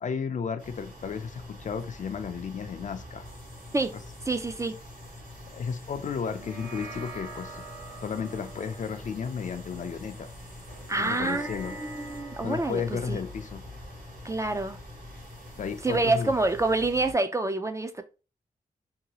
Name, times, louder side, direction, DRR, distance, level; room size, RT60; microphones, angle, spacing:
voice 1, 0.0-3.3 5.5-7.6 8.0-10.3 11.0-11.8 12.4-13.7 15.6-16.3, left 6 dB, 55° left, 0.4 m, -33 dB
sound 1, 0.6-17.1, left 1 dB, 65° right, 1.2 m, -45 dB
voice 2, 4.3-4.7 10.9-12.8 13.1-13.2 14.2-14.8 15.8-18.0, right 2 dB, 20° right, 0.3 m, -27 dB
sound 2, 6.2-14.9, right 2 dB, 85° right, 1.0 m, -46 dB
2.7 x 2.3 x 2.8 m
wide cardioid pair, 85°, 15 cm